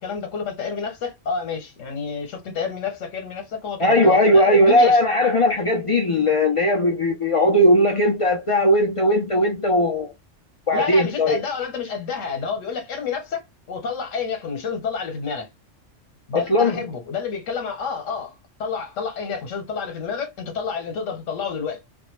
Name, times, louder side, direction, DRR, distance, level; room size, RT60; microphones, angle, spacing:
voice 1, 0.0-5.0 10.7-15.5 16.3-18.3 18.6-21.8, left 5 dB, 85° left, 1.2 m, -29 dB
voice 2, 3.8-10.1 10.7-11.4 16.3-16.8, left 1 dB, 55° left, 0.3 m, -18 dB
2.6 x 2.1 x 3.0 m
omnidirectional pair, 1.3 m